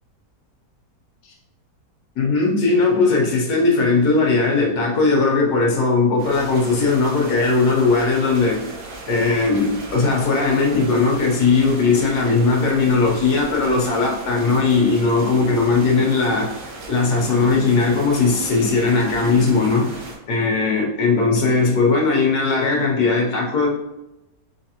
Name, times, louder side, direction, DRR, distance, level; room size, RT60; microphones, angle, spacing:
voice 1, 2.2-8.6 9.1-16.6 16.9-20.0 20.3-23.7, left 3 dB, 65° left, -1 dB, 1.5 m, -18 dB
sound 1, 6.2-20.2, right 2 dB, 65° right, 1.4 m, -37 dB
4.7 x 3.8 x 2.9 m, 0.93 s
omnidirectional pair, 1.9 m